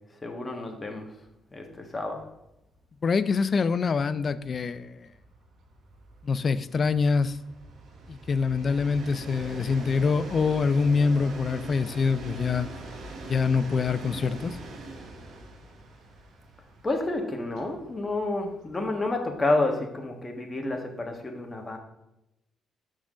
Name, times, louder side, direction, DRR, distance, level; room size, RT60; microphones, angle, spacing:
voice 1, 0.2-1.1 1.5-2.2 16.8-21.8, left 2 dB, 20° left, 1.4 m, -29 dB
Train, 1.2-1.3 1.7-1.8 2.0-19.5, right 2 dB, 70° right, 1.1 m, -43 dB
voice 2, 3.0-5.1 6.2-7.4 8.1-12.7 13.2-14.6, left 5 dB, 45° left, 0.4 m, -25 dB
6.2 x 3.8 x 6.2 m
cardioid pair, 90°, 0 cm